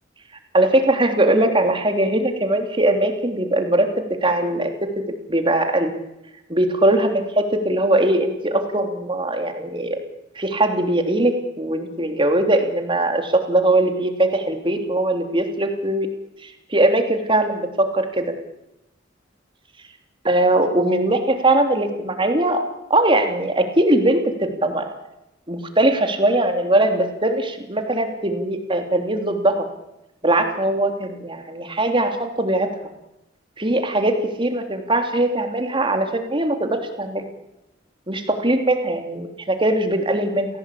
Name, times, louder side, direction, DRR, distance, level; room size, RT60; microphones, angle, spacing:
voice 1, 0.5-4.9 5.3-5.9 6.5-10.0 10.3-16.1 16.4-18.3 20.2-22.6 22.9-24.9 25.5-29.7 30.2-32.7 33.6-37.3 38.1-40.5, right 1 dB, 25° right, 5 dB, 3.2 m, -20 dB
29.5 x 17.5 x 8.5 m, 0.90 s
head